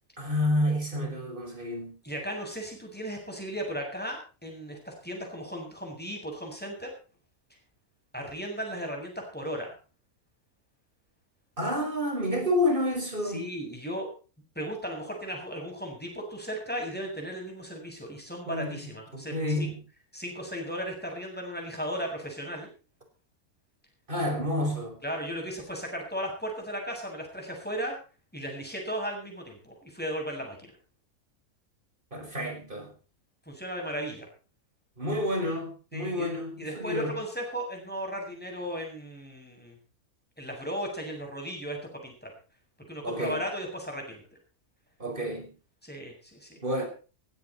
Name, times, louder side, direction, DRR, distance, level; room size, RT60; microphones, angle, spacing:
voice 1, 0.2-2.0 11.6-13.5 18.5-19.8 24.1-25.0 32.1-32.9 35.0-37.2 43.0-43.4 45.0-45.5 46.6-46.9, left 1 dB, 35° right, 4 dB, 5.7 m, -29 dB
voice 2, 2.0-6.9 8.1-9.7 13.3-14.1 14.6-19.3 19.6-19.7 20.1-22.7 25.0-28.0 28.3-30.7 33.5-34.3 35.9-36.3 36.6-39.8 40.4-42.3 42.9-44.2 45.8-46.6, equal, 5° left, 1 dB, 7.6 m, -36 dB
17.0 x 16.5 x 4.3 m, 0.36 s
omnidirectional pair, 1.6 m